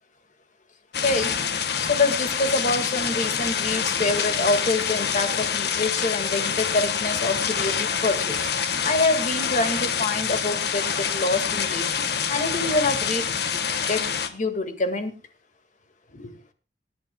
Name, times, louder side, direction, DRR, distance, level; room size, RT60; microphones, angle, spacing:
sound 1, 0.9-14.3, left 7 dB, 65° left, 1.3 m, -26 dB
voice 1, 1.0-1.3 1.8-8.4 8.8-11.8 12.3-13.3 13.5-13.6 13.9-15.1 16.1-16.3, left 2 dB, 45° left, 8 dB, 1.9 m, -26 dB
27.0 x 10.0 x 2.2 m, 0.28 s
head